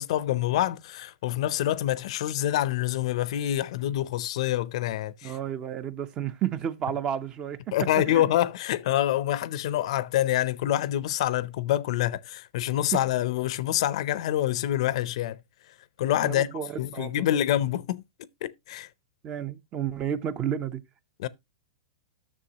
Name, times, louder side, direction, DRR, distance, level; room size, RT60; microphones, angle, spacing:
voice 1, 0.0-5.4 7.7-15.4 16.0-16.5 16.8-18.0 18.4-18.9 21.2-21.3, left 13 dB, 55° left, 0.5 m, -26 dB
voice 2, 5.2-7.7 8.1-8.3 16.2-17.3 19.2-20.8, right 9 dB, 25° right, 0.5 m, -31 dB
9.9 x 6.7 x 2.8 m
supercardioid pair, 155°, 4 cm